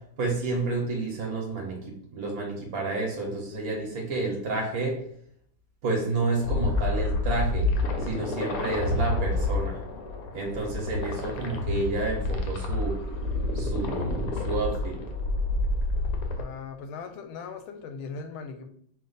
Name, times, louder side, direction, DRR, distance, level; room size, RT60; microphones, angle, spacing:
voice 1, 0.2-4.9 5.8-7.7 8.0-9.8 10.3-13.0 13.5-15.0, right 3 dB, 55° right, -1 dB, 1.2 m, -30 dB
sound 1, 6.4-16.4, left 2 dB, 70° left, 0.9 m, -28 dB
voice 2, 16.3-18.7, left 5 dB, 90° left, 8 dB, 1.4 m, -39 dB
4.7 x 2.4 x 3.9 m, 0.66 s
omnidirectional pair, 2.2 m